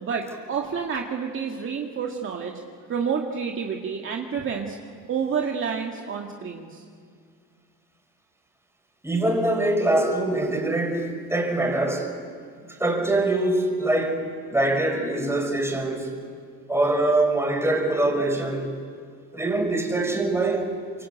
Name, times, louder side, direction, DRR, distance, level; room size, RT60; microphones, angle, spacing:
voice 1, 0.0-2.6 2.9-4.8 5.1-6.8, right 6 dB, 35° right, 2.1 m, -29 dB
voice 2, 9.0-12.1 12.8-14.2 14.5-16.1 16.7-18.8 19.3-20.7, right 2 dB, 5° right, 5.5 m, -23 dB
26.0 x 23.0 x 8.9 m
supercardioid pair, 110°, 37 cm